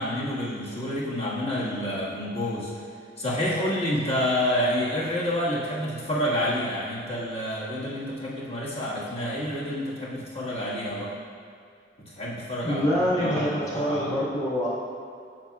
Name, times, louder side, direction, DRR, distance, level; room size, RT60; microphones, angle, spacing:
voice 1, 0.0-2.7 3.2-11.1 12.0-14.1, left 1 dB, 35° left, -7 dB, 1.6 m, -28 dB
voice 2, 12.6-14.7, equal, 20° left, -8 dB, 1.4 m, -25 dB
10.0 x 7.6 x 2.3 m, 2.3 s
head